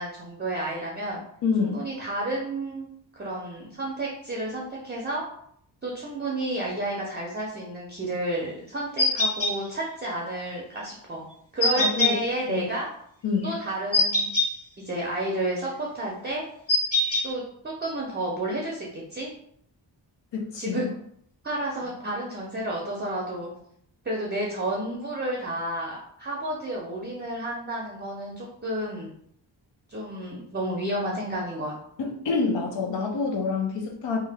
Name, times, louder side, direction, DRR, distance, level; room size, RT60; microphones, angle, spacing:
voice 1, 0.0-1.2 1.6-2.8 3.1-5.3 5.8-11.2 11.5-12.9 13.4-14.3 14.8-16.4 17.2-19.3 20.6-20.9 21.4-23.5 24.0-29.1 29.9-31.7, right 1 dB, 25° right, -3 dB, 0.5 m, -31 dB
voice 2, 1.4-1.8 11.7-12.2 12.5-12.7 13.2-13.5 20.3-20.8 32.0-34.2, left 4 dB, 65° left, 1 dB, 0.6 m, -27 dB
sound 1, 9.0-9.5 11.6-12.1 13.9-14.5 16.7-17.2, left 2 dB, 30° left, 0.9 m, -22 dB
2.8 x 2.2 x 3.4 m, 0.69 s
wide cardioid pair, 130°, 47 cm